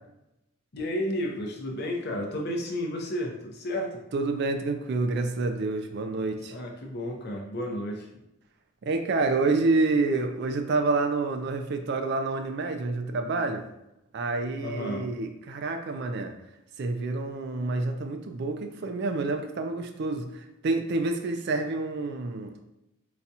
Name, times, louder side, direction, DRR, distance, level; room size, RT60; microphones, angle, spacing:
voice 1, 0.7-4.0 6.5-8.1 14.6-15.1, left 1 dB, 50° left, 0 dB, 0.6 m, -32 dB
voice 2, 4.1-6.5 8.8-13.6 14.1-16.3 16.8-22.6, right 3 dB, 50° right, 6 dB, 0.3 m, -28 dB
4.0 x 2.3 x 2.7 m, 0.86 s
head